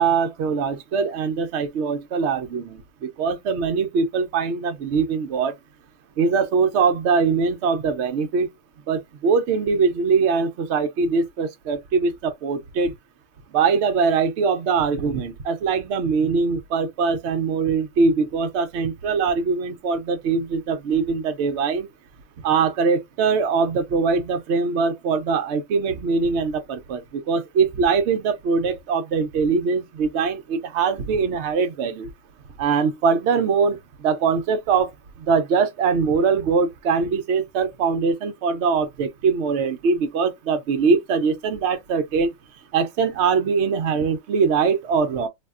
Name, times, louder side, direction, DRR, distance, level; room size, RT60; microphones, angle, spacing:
voice 1, 0.0-5.5 6.2-8.5 8.9-12.9 13.5-21.9 22.4-32.1 32.6-33.8 34.0-34.9 35.3-42.3 42.7-45.3, right 5 dB, 60° right, 0.8 m, -22 dB
3.4 x 2.2 x 2.4 m
omnidirectional pair, 1.4 m